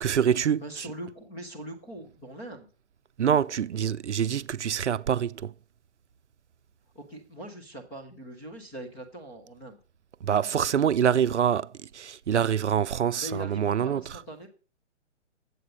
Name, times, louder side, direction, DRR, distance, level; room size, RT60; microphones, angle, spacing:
voice 1, 0.0-0.9 3.2-5.5 10.2-14.2, right 8 dB, 65° right, 0.6 m, -25 dB
voice 2, 0.6-2.7 6.9-9.8 13.2-14.5, right 1 dB, 5° left, 0.4 m, -41 dB
8.4 x 7.9 x 5.0 m
figure-of-eight pair, 125°, 37 cm